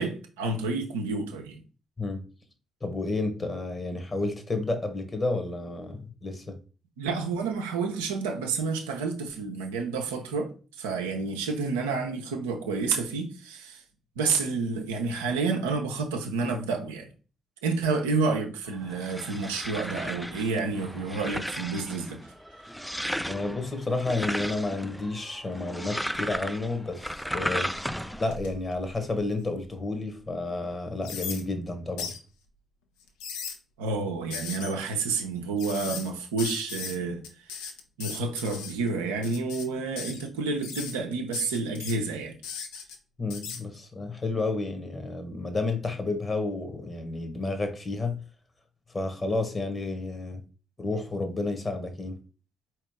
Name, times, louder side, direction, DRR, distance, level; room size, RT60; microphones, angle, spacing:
voice 1, 0.0-1.6 7.0-10.5 10.8-13.8 14.2-17.1 17.6-22.3 23.0-23.1 33.8-37.6 38.0-42.4, right 4 dB, 80° right, 0.6 m, -29 dB
voice 2, 2.8-6.5 23.2-27.7 28.2-32.1 43.2-48.1 48.9-50.4 50.8-52.2, left 2 dB, 30° left, 1.1 m, -31 dB
sound 1, 18.7-28.4, equal, ahead, 0.3 m, -35 dB
sound 2, 26.1-26.6 27.1-29.7 30.2-30.3 31.0-31.4 32.0-32.2 33.0-33.6 34.3-34.7 35.6-36.1 36.4-37.0 37.2-38.7 39.2-39.7 40.0-40.3 40.6-40.9 41.3-42.0 42.4-43.0 43.3-43.6, left 6 dB, 70° left, 0.6 m, -38 dB
4.5 x 3.0 x 3.5 m
figure-of-eight pair, 40°, 0 cm